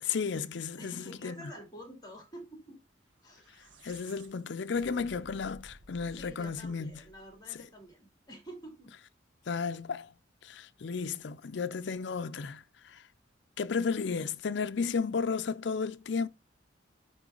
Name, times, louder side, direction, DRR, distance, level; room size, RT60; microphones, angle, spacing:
voice 1, 0.0-1.4 3.8-6.9 7.5-7.6 9.5-10.1 10.4-13.0 13.6-16.3, left 5 dB, 65° left, 0.5 m, -33 dB
voice 2, 0.8-2.8 3.2-3.5 6.0-8.9, right 1 dB, 20° left, 3.0 m, -48 dB
sound 1, 3.2-7.6, right 1 dB, 80° right, 1.6 m, -55 dB
10.0 x 3.8 x 3.8 m
head